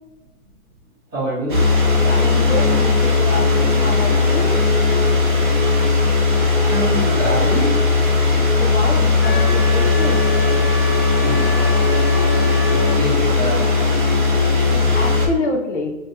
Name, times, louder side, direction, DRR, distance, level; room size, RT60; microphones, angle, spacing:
voice 1, 1.1-1.6 6.7-7.8 11.2-11.9 12.7-14.2 14.7-14.9, right 1 dB, 10° right, -18 dB, 0.8 m, -26 dB
sound 1, 1.5-15.3, left 3 dB, 35° right, 0.5 m, -17 dB
voice 2, 2.1-4.6 8.6-10.3 14.9-16.0, left 2 dB, 50° left, 3 dB, 0.6 m, -26 dB
Wind instrument woodwind instrument, 9.2-13.0, left 2 dB, 80° left, 1.4 m, -29 dB
2.9 x 2.3 x 3.3 m, 1.1 s
hypercardioid pair, 165°, 45 cm